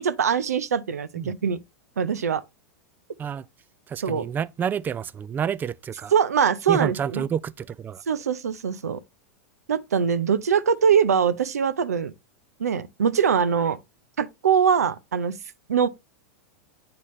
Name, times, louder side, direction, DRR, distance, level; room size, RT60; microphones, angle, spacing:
voice 1, 0.0-1.6 2.0-2.4 4.0-4.3 6.1-7.2 8.1-9.0 9.7-12.1 12.6-13.8 14.2-15.4 15.7-15.9, right 7 dB, 90° right, 0.6 m, -22 dB
voice 2, 3.9-6.1 6.7-8.0, right 8 dB, 20° right, 0.3 m, -29 dB
8.6 x 4.1 x 3.1 m
hypercardioid pair, 105°, 8 cm